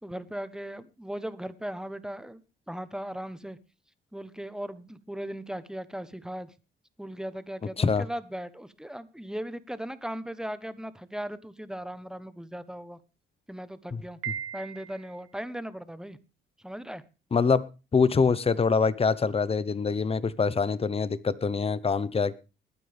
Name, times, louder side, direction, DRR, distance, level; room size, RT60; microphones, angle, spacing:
voice 1, 0.0-2.4 2.7-3.6 4.1-6.5 7.0-13.0 13.5-14.2 14.5-16.2 16.6-17.0, right 1 dB, 5° right, 1.1 m, -38 dB
voice 2, 13.9-14.3 17.3-17.6 17.9-22.4, left 5 dB, 30° left, 1.0 m, -25 dB
Piano, 14.2-15.3, right 9 dB, 90° right, 1.6 m, -37 dB
20.5 x 9.4 x 3.5 m
cardioid pair, 90°, 20 cm